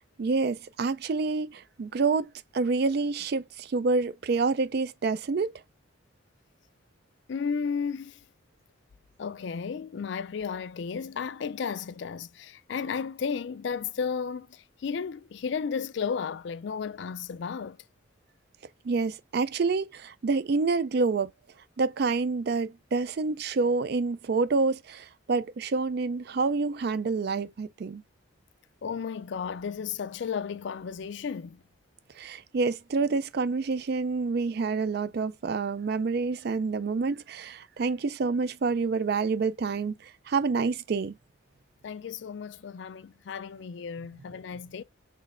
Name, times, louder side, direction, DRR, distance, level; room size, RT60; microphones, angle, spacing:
voice 1, 0.2-5.5 18.8-21.3 21.8-28.0 32.2-41.1, right 4 dB, 50° right, 0.4 m, -28 dB
voice 2, 7.3-8.2 9.2-17.8 28.8-31.6 41.8-44.8, left 6 dB, 60° left, 0.4 m, -33 dB
6.1 x 3.1 x 2.5 m
head